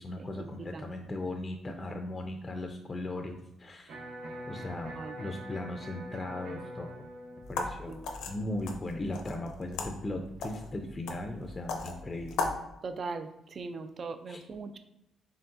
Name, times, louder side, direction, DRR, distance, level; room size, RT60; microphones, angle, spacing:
voice 1, 0.0-4.0 4.5-7.1 7.5-7.9 8.3-12.5 14.3-14.4, left 2 dB, 25° left, 5 dB, 0.4 m, -38 dB
Electric guitar, 3.9-9.9, equal, 80° right, 0.8 m, -45 dB
sound 1, 7.4-12.6, left 3 dB, 85° left, 0.6 m, -38 dB
voice 2, 12.8-14.8, right 4 dB, 45° right, 9 dB, 0.3 m, -39 dB
4.5 x 3.3 x 2.5 m, 0.88 s
cardioid pair, 90°, 0 cm